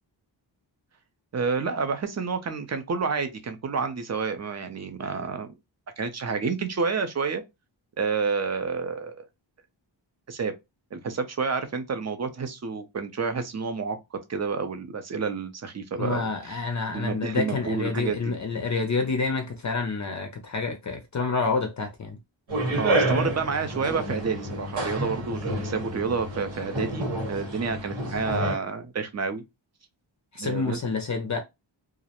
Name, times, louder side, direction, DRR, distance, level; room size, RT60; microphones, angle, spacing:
voice 1, 1.3-5.5 6.0-7.4 8.0-9.3 10.3-10.5 10.9-14.0 14.3-16.6 16.9-18.4 22.7-29.4 30.4-30.8, right 5 dB, 35° right, 0.5 m, -29 dB
voice 2, 16.0-22.2 30.3-31.4, left 4 dB, 40° left, 0.4 m, -28 dB
sound 1, 22.5-28.6, right 1 dB, 75° right, 1.3 m, -29 dB
2.4 x 2.0 x 2.8 m
wide cardioid pair, 115°, 46 cm